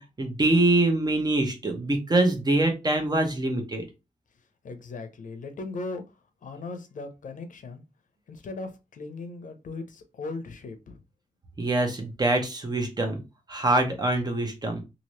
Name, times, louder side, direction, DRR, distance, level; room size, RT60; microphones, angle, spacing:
voice 1, 0.0-3.9 11.6-13.2 13.5-14.8, right 2 dB, 30° right, 0.8 m, -24 dB
voice 2, 4.6-6.0 6.4-7.8 8.3-11.0, left 3 dB, 75° left, 0.7 m, -38 dB
2.8 x 2.6 x 3.1 m
wide cardioid pair, 125°, 14 cm